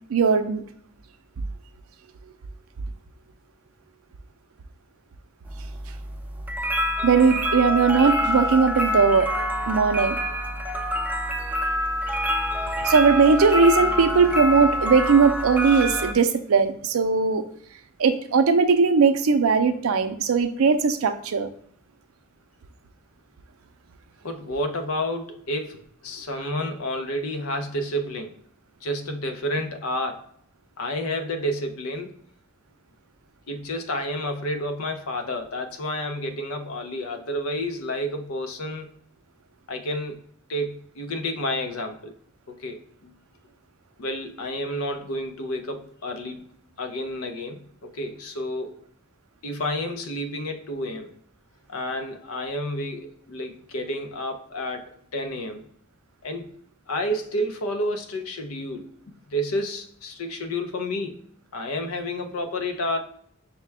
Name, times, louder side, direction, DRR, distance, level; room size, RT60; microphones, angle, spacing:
voice 1, 0.1-0.6 7.0-9.3 9.7-10.2 12.8-17.4 18.0-21.5, right 5 dB, 75° right, 0.5 m, -19 dB
sound 1, 5.5-16.1, left 1 dB, 10° right, 0.3 m, -26 dB
voice 2, 24.2-28.4 28.8-30.3 30.8-32.2 33.5-38.9 39.7-40.2 40.5-42.1 42.5-43.1 44.0-46.5 46.8-48.7 49.4-51.1 51.7-55.6 56.2-56.6 56.9-58.9 59.3-61.2 61.5-63.0, left 1 dB, 80° left, 0.6 m, -30 dB
5.6 x 2.2 x 3.3 m
head